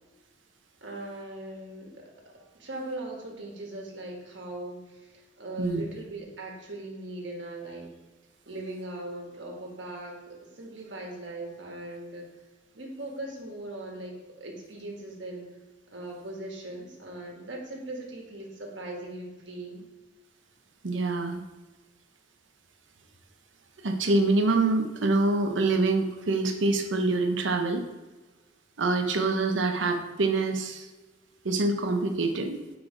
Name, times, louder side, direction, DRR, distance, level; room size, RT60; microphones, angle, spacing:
voice 1, 0.8-7.9 8.5-12.4 12.7-15.5 15.9-19.8, right 2 dB, 75° right, 0 dB, 1.6 m, -39 dB
voice 2, 20.8-21.4 23.8-27.8 28.8-30.9 31.4-32.6, right 3 dB, 90° right, 5 dB, 0.8 m, -25 dB
6.3 x 4.7 x 4.8 m, 1.2 s
head